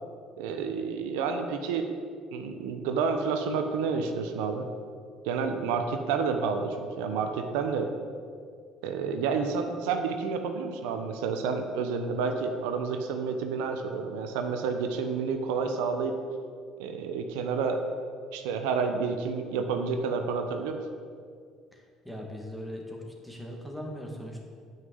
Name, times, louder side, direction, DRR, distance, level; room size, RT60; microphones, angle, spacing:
voice 1, 0.4-1.9 2.3-4.6 5.2-7.9 8.8-16.2 16.8-17.8 18.3-20.8, right 5 dB, 90° right, 5 dB, 0.9 m, -29 dB
voice 2, 21.7-24.4, equal, ahead, 0 dB, 2.2 m, -40 dB
9.5 x 5.8 x 7.9 m, 2.1 s
supercardioid pair, 95°, 0 cm